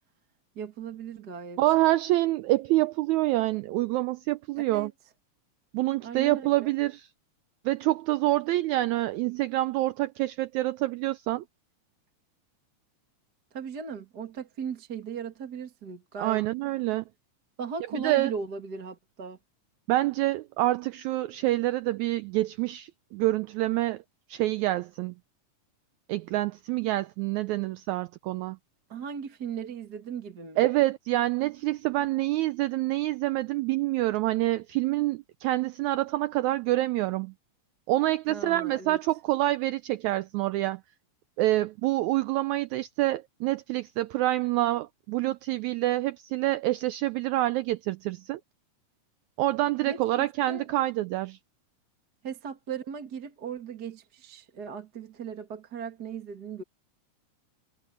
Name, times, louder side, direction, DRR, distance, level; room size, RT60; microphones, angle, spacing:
voice 1, 0.6-1.6 4.7-4.9 6.0-6.7 13.5-16.5 17.6-19.4 28.9-30.7 38.3-39.0 49.9-50.7 52.2-56.6, right 6 dB, 35° right, 1.9 m, -37 dB
voice 2, 1.6-4.9 5.7-7.1 7.6-11.4 16.2-17.0 17.9-18.3 19.9-24.0 24.3-25.1 26.1-28.6 30.6-37.3 37.9-40.8 41.4-48.4 49.4-51.4, right 17 dB, 85° right, 1.6 m, -27 dB
omnidirectional pair, 3.8 m